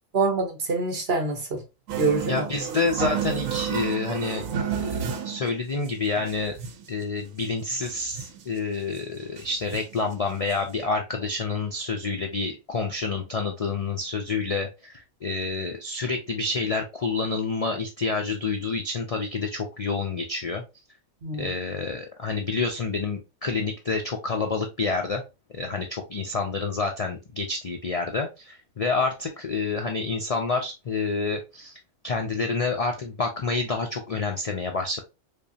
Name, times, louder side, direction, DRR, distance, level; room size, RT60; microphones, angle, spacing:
voice 1, 0.1-1.6 2.0-2.5 21.2-21.5, right 3 dB, 50° right, 1.2 m, -25 dB
sound 1, 1.9-5.5 5.9-6.0 6.2-6.9 7.4-7.5 7.7-8.5 9.0-9.1 9.4-10.0 10.5-10.6 10.8-10.9, right 8 dB, 75° right, 1.1 m, -31 dB
voice 2, 2.2-6.5 6.9-20.6 21.4-25.2 25.5-31.8 32.0-35.0, left 4 dB, 70° left, 0.3 m, -28 dB
5.1 x 2.2 x 2.7 m
omnidirectional pair, 1.4 m